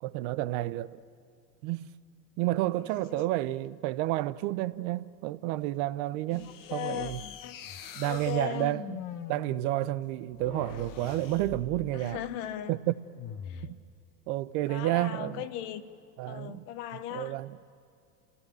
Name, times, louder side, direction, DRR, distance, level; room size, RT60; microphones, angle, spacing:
voice 1, 0.0-1.0 1.6-1.9 2.4-7.2 7.9-9.0 9.3-12.2 12.7-13.0 14.3-15.4 16.2-16.6 17.1-17.7, right 16 dB, 60° right, 0.9 m, -30 dB
sound 1, 6.3-12.2 13.1-13.8, left 8 dB, 40° left, 1.3 m, -44 dB
voice 2, 6.7-7.1 7.4-7.6 8.0-8.7 11.9-12.7 13.5-13.6 14.7-15.8 16.3-17.4, left 12 dB, 70° left, 1.4 m, -37 dB
28.5 x 16.5 x 7.6 m
hypercardioid pair, 90°, 48 cm